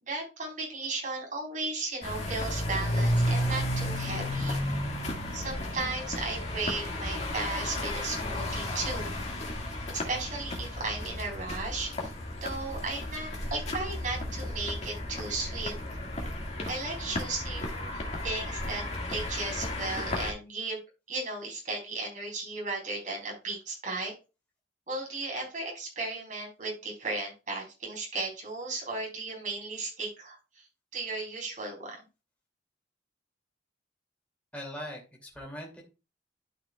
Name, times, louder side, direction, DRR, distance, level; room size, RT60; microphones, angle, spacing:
voice 1, 0.0-4.6 5.3-9.1 10.1-12.1 12.4-15.7 16.7-18.8 19.1-20.8 21.1-24.1 24.9-30.7 30.9-32.0, right 3 dB, 45° right, -1 dB, 4.2 m, -35 dB
sound 1, 2.0-20.3, left 1 dB, 35° left, 2.0 m, -33 dB
voice 2, 34.5-35.8, equal, 5° left, -1 dB, 2.6 m, -41 dB
12.5 x 5.6 x 2.3 m, 0.28 s
head